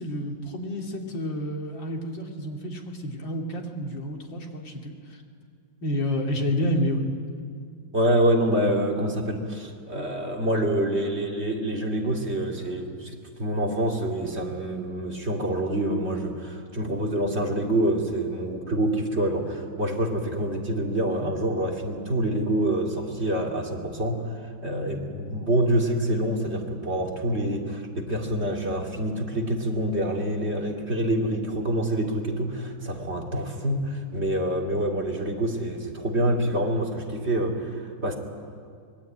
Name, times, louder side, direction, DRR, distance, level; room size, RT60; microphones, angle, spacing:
voice 1, 0.0-5.2 5.8-7.0, equal, 80° left, 1 dB, 3.2 m, -29 dB
voice 2, 7.9-38.2, right 1 dB, 35° right, 0 dB, 2.7 m, -26 dB
25.0 x 21.0 x 9.1 m, 2.2 s
omnidirectional pair, 2.0 m